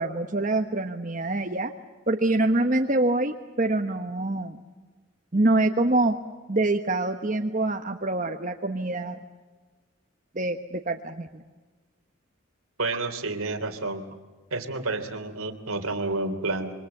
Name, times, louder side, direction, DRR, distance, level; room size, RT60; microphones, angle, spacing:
voice 1, 0.0-1.7 2.1-4.6 5.3-6.2 6.5-9.2 10.3-11.4, right 2 dB, 35° right, 4 dB, 1.1 m, -25 dB
voice 2, 12.8-14.0 14.5-16.7, right 3 dB, 90° right, 6 dB, 3.1 m, -29 dB
27.0 x 25.0 x 7.9 m, 1.3 s
head